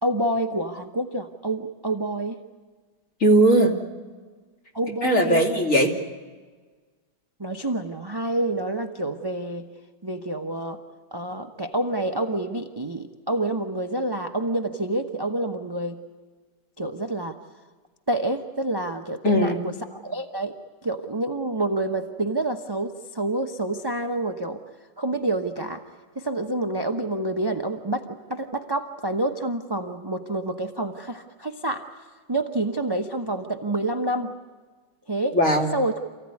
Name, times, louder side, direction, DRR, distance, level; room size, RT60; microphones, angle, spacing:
voice 1, 0.0-2.4 4.7-5.5 7.4-9.7 10.0-10.8 11.1-16.0 16.8-17.4 18.1-19.7 20.0-20.5 20.8-24.6 25.0-25.8 26.2-31.8 32.3-34.3 35.1-35.4 35.7-35.9, right 1 dB, 25° right, 5 dB, 0.5 m, -28 dB
voice 2, 3.2-3.7 5.0-5.9 19.2-19.6 35.3-35.7, right 1 dB, 40° left, 1 dB, 3.0 m, -18 dB
28.0 x 15.5 x 9.7 m, 1.4 s
omnidirectional pair, 2.2 m